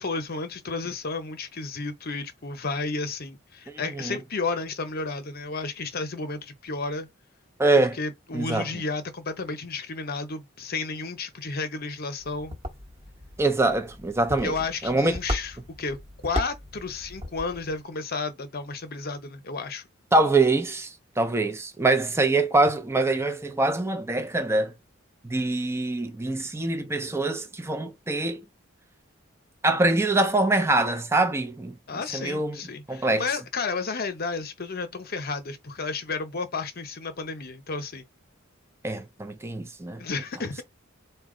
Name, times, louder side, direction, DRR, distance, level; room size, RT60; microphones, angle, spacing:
voice 1, 0.0-7.1 7.7-12.6 14.4-16.0 16.2-19.8 31.9-38.1 40.0-40.6, left 4 dB, 50° left, 0.8 m, -32 dB
voice 2, 7.6-8.0 8.3-8.6 13.4-14.5 14.8-15.2 20.1-20.9 21.2-24.7 25.2-28.4 29.6-31.7 32.1-32.6 32.9-33.2 38.8-40.0, right 2 dB, 15° right, 0.6 m, -24 dB
sound 1, 12.2-17.8, equal, 30° right, 1.1 m, -36 dB
4.1 x 2.3 x 3.8 m
head